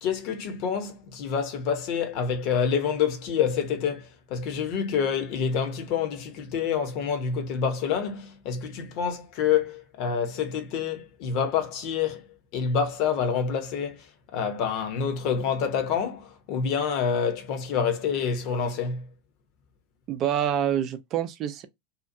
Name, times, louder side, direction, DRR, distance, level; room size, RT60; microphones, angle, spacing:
voice 1, 0.0-12.2 12.5-14.0 14.3-19.0, left 7 dB, 55° left, 0.9 m, -27 dB
voice 2, 20.1-21.7, right 10 dB, 45° right, 0.5 m, -26 dB
2.8 x 2.4 x 2.6 m
hypercardioid pair, 85°, 0 cm